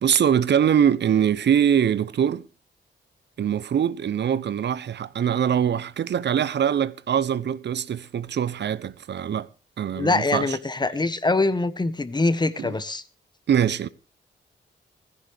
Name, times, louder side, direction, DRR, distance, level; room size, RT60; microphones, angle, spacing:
voice 1, 0.0-2.4 3.4-9.5 9.8-10.6 12.6-12.7 13.5-13.9, right 8 dB, 60° right, 0.8 m, -23 dB
voice 2, 10.0-13.0, left 3 dB, 20° left, 1.3 m, -23 dB
17.0 x 15.0 x 3.5 m
cardioid pair, 90°, 20 cm